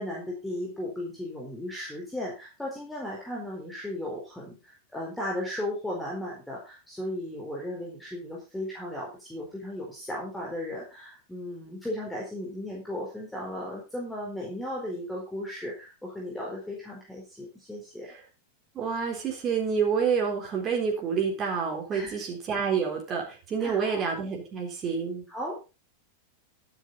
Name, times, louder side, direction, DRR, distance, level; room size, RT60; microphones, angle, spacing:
voice 1, 0.0-18.1 21.9-22.2 23.6-24.0 25.3-25.6, left 1 dB, 5° left, -3 dB, 4.2 m, -36 dB
voice 2, 18.8-25.2, right 6 dB, 30° right, -1 dB, 3.8 m, -28 dB
12.5 x 9.4 x 4.0 m, 0.30 s
figure-of-eight pair, 90°, 0 cm